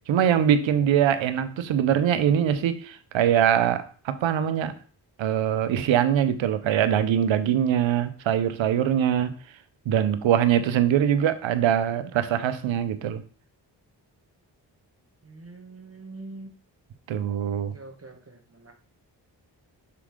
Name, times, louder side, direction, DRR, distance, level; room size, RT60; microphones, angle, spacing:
voice 1, 0.1-4.7 5.2-9.3 9.9-13.2 17.1-17.7, right 9 dB, 85° right, 12 dB, 0.7 m, -23 dB
voice 2, 15.2-16.5 17.4-18.7, right 2 dB, 30° right, 3 dB, 1.5 m, -44 dB
6.0 x 4.7 x 3.7 m, 0.41 s
supercardioid pair, 40°, 45 cm